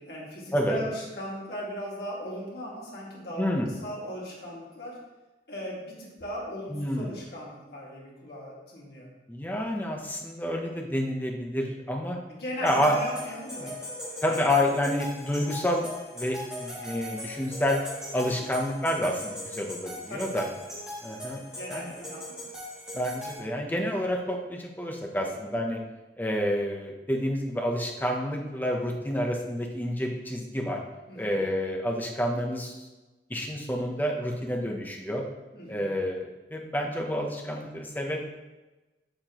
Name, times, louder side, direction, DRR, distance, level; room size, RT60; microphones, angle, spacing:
voice 1, 0.0-5.0 5.5-9.1 12.3-14.5 18.4-18.5 20.1-20.5 21.5-22.4 25.2-25.4 31.1-31.4 35.5-35.9, equal, 65° left, -5 dB, 2.0 m, -38 dB
voice 2, 3.4-3.7 6.7-7.1 9.3-12.2 12.6-13.0 13.6-13.7 14.2-15.9 16.1-17.8 18.1-20.4 21.0-21.4 21.7-21.9 22.9-25.8 26.2-30.8 31.2-32.8 33.3-35.2 35.7-38.2, equal, 10° left, 1 dB, 0.7 m, -29 dB
sound 1, 12.7-23.4, left 1 dB, 5° right, 2.2 m, -40 dB
6.7 x 5.9 x 2.9 m, 1.1 s
head